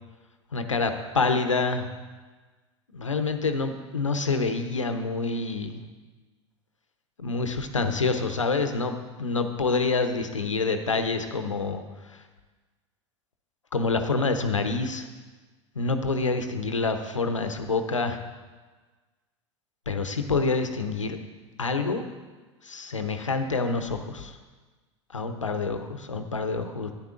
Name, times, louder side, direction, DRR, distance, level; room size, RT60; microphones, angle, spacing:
voice 1, 0.5-1.9 2.9-5.8 7.2-12.2 13.7-15.1 15.7-18.2 19.9-21.2 21.6-22.0 22.6-24.4 25.1-26.9, left 4 dB, 85° left, 7 dB, 0.8 m, -27 dB
12.0 x 10.0 x 2.5 m, 1.3 s
figure-of-eight pair, 85°, 16 cm